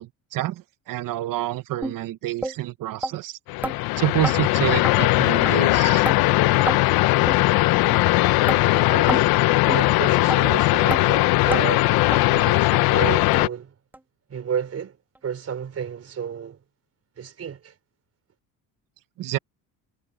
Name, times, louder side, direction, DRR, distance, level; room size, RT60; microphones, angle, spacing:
voice 1, 0.0-3.4 4.0-6.1 19.2-19.4, right 15 dB, 60° right, 0.9 m, -28 dB
sound 1, 1.8-2.0 2.4-2.5 3.0-3.1 3.6-3.8 4.2-4.4 4.8-4.9 5.4-5.5 6.0-6.2 6.7-6.8 7.3-7.4 7.9-8.0 8.5-8.6 9.1-9.3 9.7-9.8 10.3-10.4 10.9-11.0 11.5-11.6 12.1-12.2 12.7-12.8 13.3-13.4 13.9-14.0 14.5-14.6, right 1 dB, 5° right, 0.6 m, -28 dB
sound 2, 3.5-13.5, left 19 dB, 70° left, 0.6 m, -19 dB
voice 2, 8.5-9.3 9.7-12.0 12.3-13.7 14.3-15.0 15.2-16.6 17.2-17.7, right 7 dB, 40° right, 4.4 m, -32 dB
cardioid pair, 115°, 38 cm